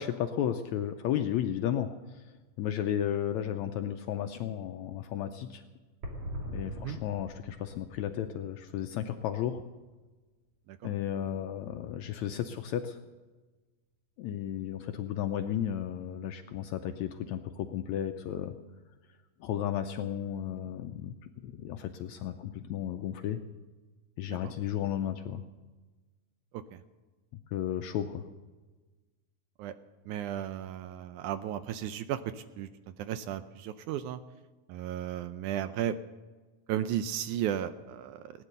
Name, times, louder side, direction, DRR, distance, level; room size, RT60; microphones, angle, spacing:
voice 1, 0.0-2.3 2.6-5.6 6.5-9.6 10.8-13.0 14.2-18.6 19.4-23.4 24.2-25.4 27.5-28.3, left 10 dB, 75° left, 7 dB, 1.7 m, -33 dB
sound 1, 6.0-9.8 10.1-10.2 10.3-10.4, equal, 45° right, 3.4 m, -42 dB
voice 2, 6.7-7.0 10.7-10.8 24.3-24.5 26.7-26.8 29.6-29.7 30.1-32.7 33.0-34.2 34.7-36.0 36.7-38.4, right 10 dB, 80° right, 12 dB, 1.9 m, -34 dB
18.0 x 10.0 x 6.7 m, 1.3 s
omnidirectional pair, 3.8 m